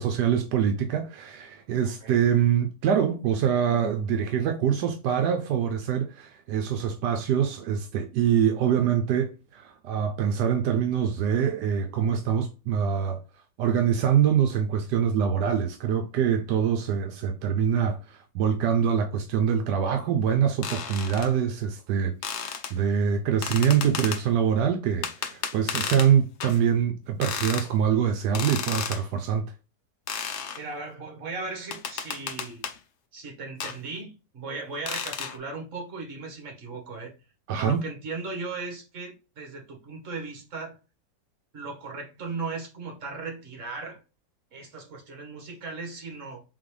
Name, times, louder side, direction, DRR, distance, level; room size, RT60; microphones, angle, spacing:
voice 1, 0.0-13.2 13.6-22.1 22.4-29.5 37.5-37.8, right 8 dB, 85° right, 1.2 m, -24 dB
sound 1, 20.6-21.3 22.2-22.7 23.4-24.2 25.0-26.1 26.4-26.6 27.2-27.7 28.3-29.0 30.1-30.6 31.7-32.8 33.6-33.8 34.9-35.4, left 7 dB, 60° left, 0.8 m, -32 dB
voice 2, 30.6-32.7 33.1-37.1 37.6-40.8 41.5-44.0 44.5-46.4, right 3 dB, 50° right, 1.7 m, -37 dB
3.9 x 3.8 x 3.2 m
omnidirectional pair, 1.8 m